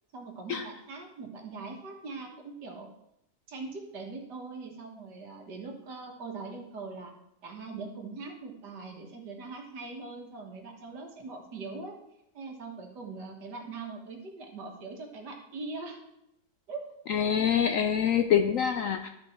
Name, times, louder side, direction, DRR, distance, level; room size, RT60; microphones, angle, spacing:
voice 1, 0.1-2.9 3.5-7.1 7.4-11.9 12.3-16.0 16.7-16.9, right 3 dB, 75° right, 1 dB, 2.0 m, -41 dB
voice 2, 17.1-19.1, left 8 dB, 70° left, 7 dB, 0.8 m, -25 dB
13.0 x 5.2 x 4.4 m, 0.82 s
omnidirectional pair, 1.8 m